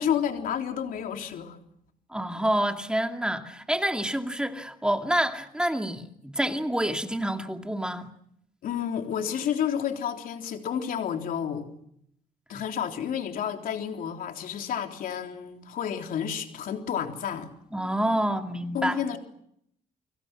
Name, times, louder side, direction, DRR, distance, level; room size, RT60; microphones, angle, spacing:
voice 1, 0.0-1.6 8.6-11.7 12.5-17.5 18.7-19.2, left 8 dB, 75° left, 3.6 m, -30 dB
voice 2, 2.1-8.1 17.7-19.0, right 1 dB, 5° right, 2.4 m, -28 dB
30.0 x 25.0 x 6.1 m
cardioid pair, 100°, 15 cm